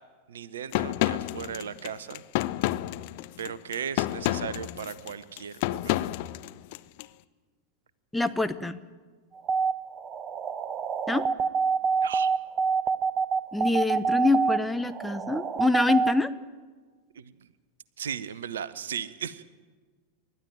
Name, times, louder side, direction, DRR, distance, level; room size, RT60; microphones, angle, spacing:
voice 1, 0.3-2.2 3.4-6.1 12.0-12.3 17.2-17.3 18.0-19.4, right 8 dB, 65° right, 17 dB, 0.9 m, -36 dB
sound 1, 0.7-7.1, left 17 dB, 50° left, 0.6 m, -30 dB
voice 2, 8.1-8.8 11.1-11.3 13.5-16.3, left 3 dB, 5° left, 9 dB, 0.9 m, -25 dB
sound 2, 9.4-16.1, right 5 dB, 25° right, 0.9 m, -26 dB
29.5 x 12.5 x 9.1 m, 1.4 s
figure-of-eight pair, 90°, 0 cm